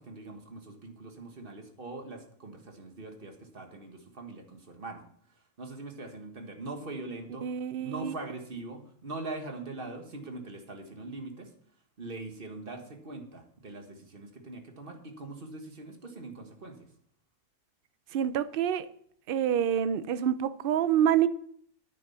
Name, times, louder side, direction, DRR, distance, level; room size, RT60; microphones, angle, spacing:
voice 1, 0.0-5.0 5.3-11.5 12.0-16.9, right 2 dB, 35° right, 1.6 m, -42 dB
voice 2, 7.4-8.1 18.1-18.9 19.3-21.3, right 9 dB, 75° right, 0.5 m, -27 dB
9.6 x 9.5 x 5.7 m
omnidirectional pair, 1.6 m